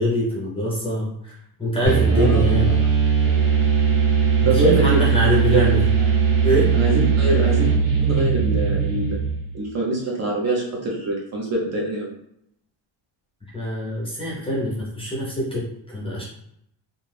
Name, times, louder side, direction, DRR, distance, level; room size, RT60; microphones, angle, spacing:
voice 1, 0.0-1.3 1.6-2.8 4.5-5.9 6.4-6.7 13.5-16.2, equal, 10° left, -5 dB, 0.5 m, -24 dB
sound 1, 1.9-9.5, right 6 dB, 80° right, 1.3 m, -19 dB
voice 2, 2.1-2.8 4.4-5.7 6.7-7.7 8.0-9.2 9.5-12.1, right 2 dB, 35° right, -3 dB, 0.5 m, -24 dB
2.5 x 2.2 x 3.3 m, 0.76 s
cardioid pair, 180°, 47 cm